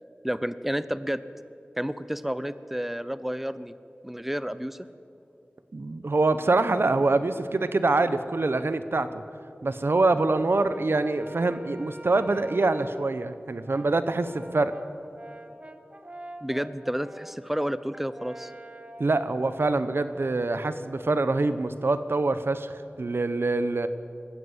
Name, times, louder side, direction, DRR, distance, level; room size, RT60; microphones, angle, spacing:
voice 1, 0.2-1.2 1.8-3.7 4.0-4.9 16.4-18.5, equal, 5° right, 14 dB, 0.7 m, -30 dB
voice 2, 5.7-9.2 9.6-14.7 19.0-23.9, right 3 dB, 75° right, 12 dB, 1.0 m, -25 dB
Brass instrument, 10.6-13.1 13.7-20.6, right 1 dB, 30° right, 1.3 m, -45 dB
21.0 x 15.0 x 8.1 m, 2.6 s
wide cardioid pair, 45°, 4 cm